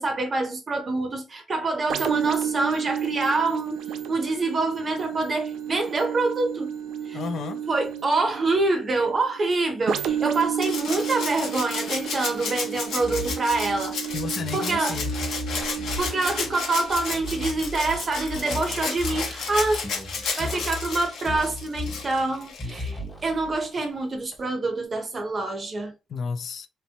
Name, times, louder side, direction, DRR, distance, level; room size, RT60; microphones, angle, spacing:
voice 1, 0.0-6.7 7.1-7.2 7.7-14.1 14.5-15.0 16.0-19.8 20.2-25.9, right 3 dB, 35° right, 0.6 m, -26 dB
sound 1, 1.9-19.4 20.0-20.1, right 8 dB, 75° right, 0.4 m, -32 dB
voice 2, 7.1-7.6 14.1-15.1 26.1-26.7, left 5 dB, 60° left, 0.4 m, -32 dB
Rattle (instrument), 10.6-22.9 24.3-24.4, left 4 dB, 80° left, 0.9 m, -33 dB
sound 2, 13.0-19.5 19.8-22.3 22.6-23.7, left 2 dB, 10° left, 0.7 m, -36 dB
3.0 x 2.1 x 2.8 m
cardioid pair, 90°, 0 cm